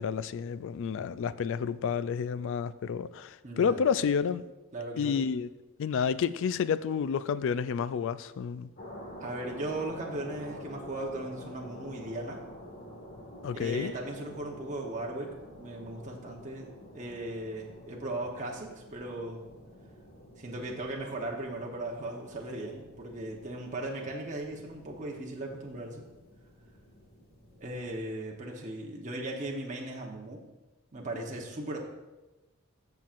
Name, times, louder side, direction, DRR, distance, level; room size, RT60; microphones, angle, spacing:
voice 1, 0.0-4.5 5.0-5.5 5.8-8.7 13.4-13.9, left 6 dB, 60° left, 0.3 m, -30 dB
voice 2, 3.4-3.8 4.7-5.2 9.2-12.4 13.5-19.4 20.4-26.0 27.6-30.4 30.9-31.8, right 2 dB, 35° right, 1.0 m, -37 dB
sound 1, 8.8-28.0, equal, 45° left, 1.9 m, -48 dB
14.5 x 5.9 x 2.5 m
head